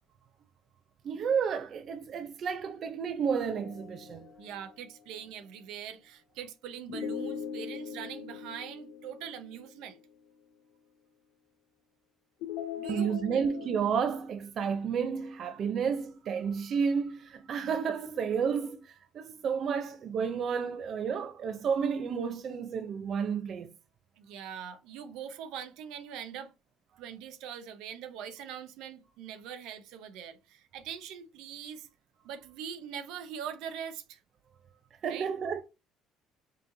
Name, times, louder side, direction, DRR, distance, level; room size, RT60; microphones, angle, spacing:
voice 1, 1.0-4.3 12.9-23.7 35.0-35.6, right 6 dB, 45° right, 0.5 m, -31 dB
sound 1, 3.3-4.9 6.9-10.0 12.4-13.8, left 7 dB, 90° left, 1.5 m, -41 dB
voice 2, 4.4-10.0 12.8-13.4 17.6-17.7 24.2-26.5 27.0-31.9 32.2-34.2 35.1-35.3, right 8 dB, 80° right, 0.9 m, -42 dB
5.2 x 3.0 x 2.6 m
cardioid pair, 130°, 0 cm